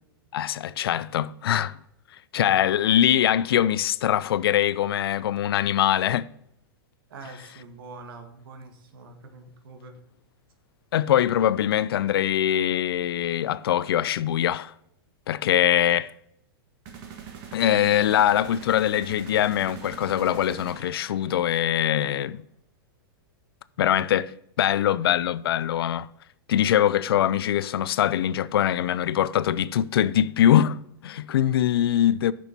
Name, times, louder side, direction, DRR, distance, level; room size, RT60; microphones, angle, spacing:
voice 1, 0.3-1.8 2.3-6.3 10.9-14.7 15.3-16.1 17.5-22.4 23.8-24.3 24.6-26.1 26.5-30.8 31.0-32.3, left 11 dB, 80° left, 0.4 m, -22 dB
voice 2, 7.1-10.0, right 3 dB, 65° right, 1.8 m, -44 dB
sound 1, 16.9-21.6, right 7 dB, 35° right, 1.5 m, -42 dB
6.9 x 6.2 x 5.8 m
supercardioid pair, 150°, 12 cm